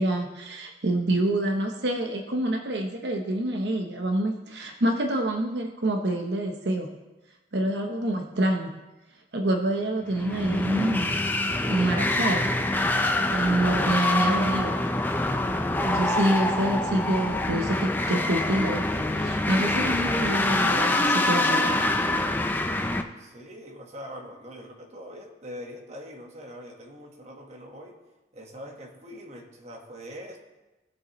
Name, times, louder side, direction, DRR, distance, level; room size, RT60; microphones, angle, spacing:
voice 1, 0.0-6.9 7.5-8.7 9.3-11.2 11.7-12.5 13.3-14.8 15.9-21.9, right 1 dB, 80° right, 3 dB, 0.9 m, -27 dB
sound 1, 10.1-23.0, left 2 dB, 10° left, 0.5 m, -25 dB
voice 2, 13.1-13.4 23.2-28.0 28.3-30.4, equal, 40° right, 1 dB, 1.5 m, -43 dB
18.0 x 7.0 x 3.1 m, 1.1 s
head